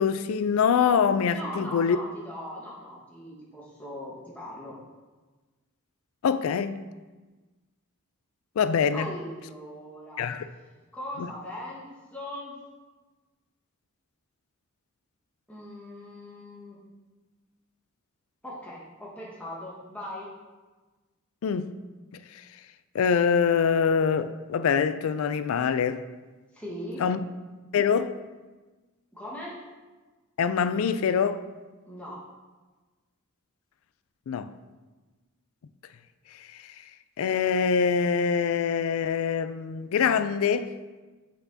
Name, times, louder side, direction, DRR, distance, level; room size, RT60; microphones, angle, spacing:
voice 1, 0.0-2.0 6.2-6.9 8.6-9.1 10.2-10.5 11.2-11.3 21.4-21.7 22.3-22.4 22.9-26.0 27.0-27.2 27.7-28.2 30.4-31.4 34.3-34.5 36.5-36.6 37.2-40.7, left 6 dB, 75° left, 0.3 m, -24 dB
voice 2, 1.3-4.8 8.9-10.3 10.9-12.6 15.5-16.8 18.4-20.3 26.5-27.1 29.1-29.6 31.9-32.2, left 1 dB, 5° left, 1.5 m, -39 dB
8.0 x 5.7 x 2.8 m
head